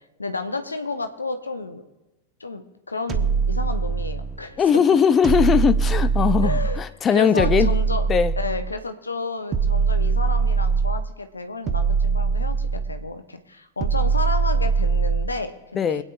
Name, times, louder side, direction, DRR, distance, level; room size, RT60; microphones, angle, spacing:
voice 1, 0.2-1.8 2.4-4.6 6.4-6.8 7.1-8.0 8.4-16.0, left 3 dB, 80° left, 0.8 m, -31 dB
sound 1, 3.1-4.4 5.2-6.9 7.4-8.8 9.5-11.1 11.7-13.1 13.8-15.4, right 5 dB, 25° right, 1.0 m, -22 dB
voice 2, 4.6-7.7 8.1-8.3 15.7-16.0, left 7 dB, 25° left, 0.6 m, -19 dB
25.0 x 8.8 x 2.5 m
figure-of-eight pair, 90°, 0 cm